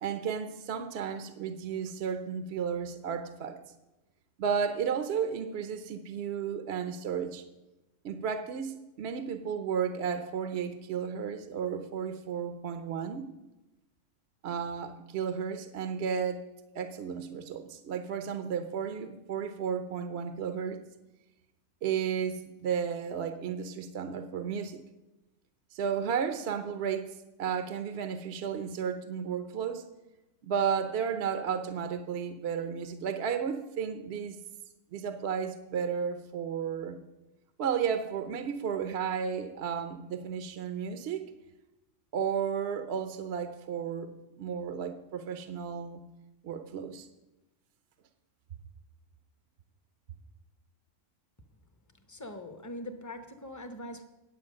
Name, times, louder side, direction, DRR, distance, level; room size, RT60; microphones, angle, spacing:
voice 1, 0.0-3.6 4.4-7.5 8.0-13.3 14.4-20.8 21.8-24.8 25.7-29.8 30.4-34.4 34.9-37.0 37.6-41.3 42.1-46.0 46.4-47.1, right 7 dB, 60° right, 9 dB, 0.9 m, -33 dB
voice 2, 52.1-54.0, left 1 dB, 15° left, 7 dB, 0.7 m, -42 dB
9.7 x 8.1 x 6.4 m, 1.0 s
omnidirectional pair, 1.3 m